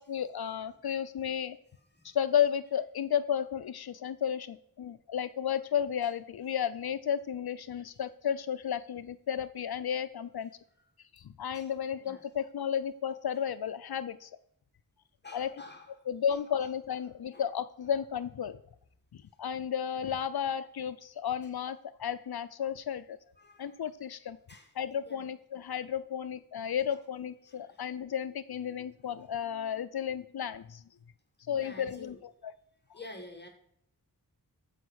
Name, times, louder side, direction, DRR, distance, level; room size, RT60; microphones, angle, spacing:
voice 1, 0.0-1.6 2.0-10.5 11.1-14.3 15.3-15.5 16.1-18.6 19.1-23.2 23.6-24.4 24.8-30.8 31.5-32.5, left 8 dB, 75° left, 13 dB, 0.6 m, -33 dB
voice 2, 15.2-15.9 17.3-17.5 23.4-23.7 24.5-24.7 25.1-25.3 26.9-27.0 27.5-27.8 31.6-32.2 32.9-33.5, left 2 dB, 25° left, 3 dB, 1.8 m, -49 dB
14.0 x 5.3 x 6.3 m, 0.72 s
wide cardioid pair, 65°, 38 cm